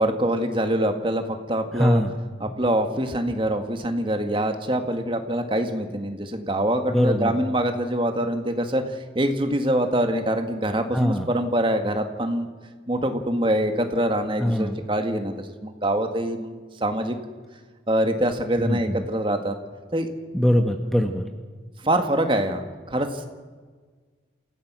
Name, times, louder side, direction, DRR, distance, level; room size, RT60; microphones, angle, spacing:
voice 1, 0.0-2.0 2.4-12.5 12.9-16.5 16.8-17.2 17.9-19.5 19.9-20.1 21.8-23.3, right 1 dB, 25° right, 6 dB, 1.8 m, -24 dB
voice 2, 1.8-2.1 6.9-7.3 10.9-11.3 14.4-14.8 18.6-19.0 20.3-21.3, equal, ahead, 5 dB, 1.1 m, -22 dB
28.0 x 16.5 x 6.2 m, 1.5 s
head